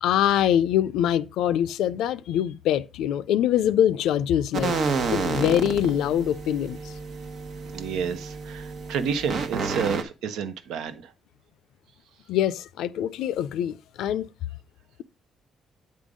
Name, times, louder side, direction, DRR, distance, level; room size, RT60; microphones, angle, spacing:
voice 1, 0.0-4.7 5.1-6.9 12.3-14.3, left 10 dB, 85° left, 0.4 m, -24 dB
sound 1, 4.5-10.0, right 4 dB, 70° right, 1.1 m, -30 dB
voice 2, 7.7-11.0, right 6 dB, 90° right, 0.8 m, -30 dB
8.5 x 3.7 x 5.0 m
cardioid pair, 90°, 0 cm